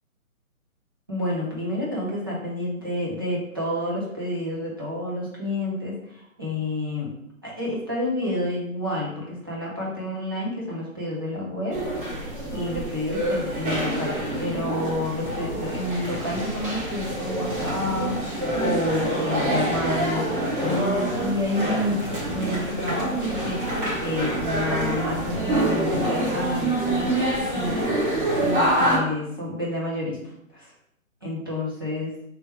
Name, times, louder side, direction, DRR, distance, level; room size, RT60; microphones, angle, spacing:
voice 1, 1.1-7.1 7.4-11.8 12.2-30.2 30.5-30.7 31.2-32.1, left 1 dB, 15° right, -6 dB, 0.6 m, -29 dB
sound 1, 11.7-29.0, right 1 dB, 35° right, 1.3 m, -26 dB
3.3 x 3.0 x 4.6 m, 0.76 s
figure-of-eight pair, 155°, 42 cm